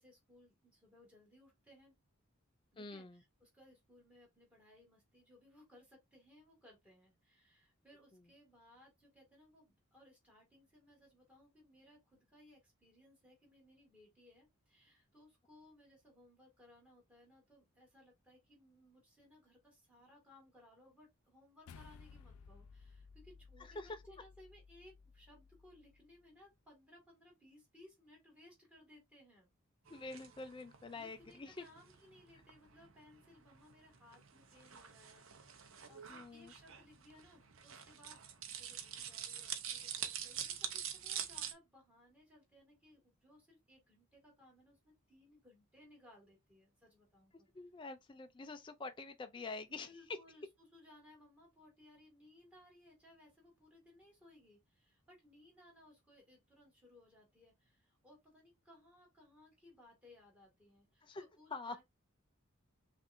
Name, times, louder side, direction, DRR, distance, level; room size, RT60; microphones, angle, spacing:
voice 1, 0.0-1.9 2.7-29.5 29.9-30.1 30.9-47.5 49.8-61.8, left 1 dB, 5° right, 2.1 m, -63 dB
voice 2, 2.8-3.2 23.6-24.0 29.9-31.6 36.1-36.5 47.3-50.2 61.0-61.2 61.5-61.8, left 3 dB, 20° left, 0.4 m, -46 dB
sound 1, 21.7-26.2, left 5 dB, 90° left, 0.4 m, -58 dB
sound 2, 29.9-41.5, right 9 dB, 65° right, 0.7 m, -46 dB
5.8 x 2.5 x 2.7 m
head